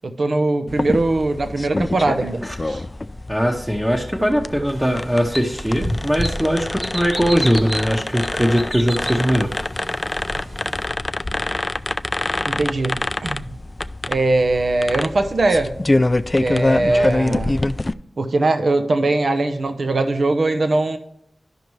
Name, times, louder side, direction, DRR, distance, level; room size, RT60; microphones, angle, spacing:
voice 1, 0.0-2.8 12.5-13.6 14.1-15.8 16.4-17.6 18.2-21.0, right 2 dB, 70° right, 8 dB, 0.7 m, -21 dB
sound 1, 0.7-17.9, left 2 dB, 35° left, 0.3 m, -25 dB
voice 2, 3.3-9.5, equal, 10° right, -1 dB, 1.0 m, -20 dB
sound 2, 4.7-10.9, equal, 30° right, 1.3 m, -31 dB
12.5 x 5.1 x 3.1 m, 0.76 s
cardioid pair, 40°, 0 cm